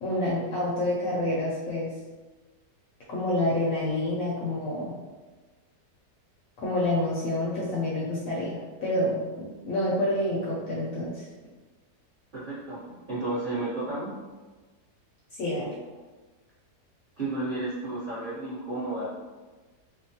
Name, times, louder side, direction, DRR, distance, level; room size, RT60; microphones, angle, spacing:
voice 1, 0.0-1.9 3.1-5.0 6.6-11.3 15.3-15.7, left 1 dB, 70° left, -6 dB, 0.8 m, -28 dB
voice 2, 12.3-14.1 15.6-15.7 17.2-19.1, right 2 dB, 40° right, -13 dB, 0.8 m, -32 dB
2.9 x 2.0 x 2.7 m, 1.3 s
omnidirectional pair, 1.8 m